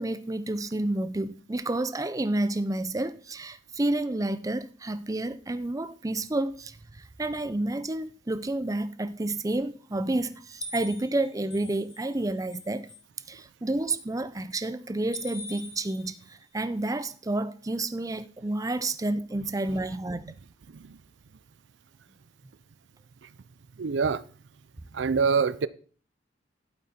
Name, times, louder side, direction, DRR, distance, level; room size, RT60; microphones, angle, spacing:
voice 1, 0.0-12.9 13.3-20.2, right 2 dB, 20° right, 0.5 m, -30 dB
sound 1, 10.6-12.2 12.5-13.0 15.1-16.3, left 2 dB, 30° left, 1.9 m, -42 dB
voice 2, 20.7-21.0 23.2-23.3 23.8-24.3 24.9-25.7, right 5 dB, 70° right, 0.5 m, -26 dB
12.0 x 8.2 x 4.3 m
head